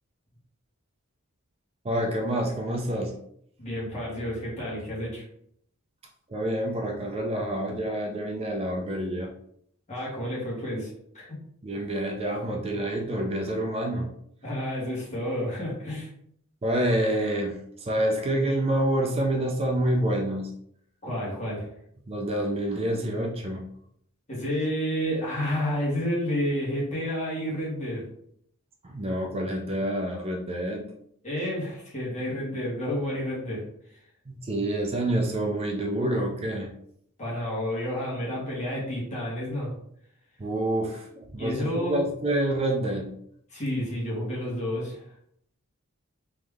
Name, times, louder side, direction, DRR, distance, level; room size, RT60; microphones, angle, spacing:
voice 1, 1.8-3.2 6.3-9.3 11.6-14.1 16.6-20.5 22.1-23.7 28.8-30.9 34.3-36.7 40.4-43.1, right 1 dB, 25° right, 1 dB, 0.5 m, -27 dB
voice 2, 3.6-5.2 9.9-11.4 14.4-16.1 21.0-21.7 24.3-28.0 31.2-33.6 37.2-39.7 41.4-42.0 43.5-45.0, equal, 35° left, -5 dB, 1.6 m, -30 dB
3.4 x 3.1 x 3.5 m, 0.69 s
head